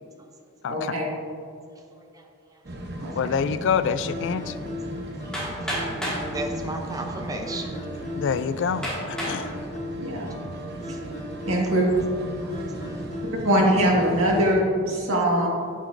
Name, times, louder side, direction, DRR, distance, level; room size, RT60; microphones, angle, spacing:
voice 1, 0.7-1.1 3.0-3.3 10.0-10.3 10.9-11.0 11.4-11.9 13.4-15.5, equal, 70° right, -3 dB, 1.7 m, -22 dB
voice 2, 1.7-2.6 3.0-3.3 5.2-5.8 6.2-7.8 10.8-11.0 12.4-13.0, right 2 dB, 15° right, 2 dB, 0.6 m, -37 dB
sound 1, 2.6-14.6, right 1 dB, 50° right, 0.9 m, -37 dB
voice 3, 3.1-4.5 8.2-9.6, left 6 dB, 55° left, 13 dB, 0.3 m, -26 dB
sound 2, 4.1-14.1, left 2 dB, 30° left, 0.7 m, -38 dB
Hammer, 5.3-6.3 7.2-7.3 7.9-8.0 8.8-9.4 10.0-10.4, equal, 5° left, 2.0 m, -30 dB
8.8 x 8.7 x 2.6 m, 2.4 s
head